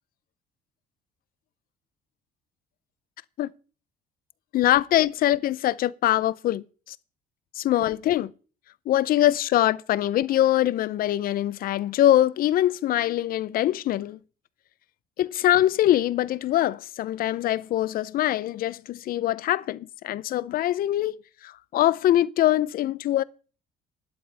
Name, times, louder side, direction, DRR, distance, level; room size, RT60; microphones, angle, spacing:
voice 1, 4.5-7.0 7.6-8.3 8.9-14.2 15.2-23.2, left 13 dB, 60° left, 0.5 m, -23 dB
12.5 x 11.0 x 3.3 m
cardioid pair, 110°, 17 cm